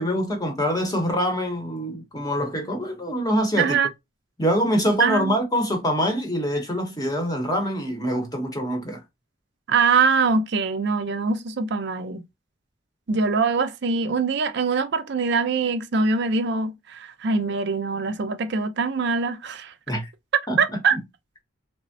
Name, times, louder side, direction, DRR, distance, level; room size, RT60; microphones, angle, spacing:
voice 1, 0.0-3.8 4.4-9.0 19.9-20.1 20.5-21.0, equal, 20° left, 0.8 m, -25 dB
voice 2, 3.6-3.9 5.0-5.3 9.7-12.2 13.1-19.7 20.6-21.0, right 4 dB, 55° right, 0.4 m, -23 dB
3.3 x 2.0 x 2.5 m
head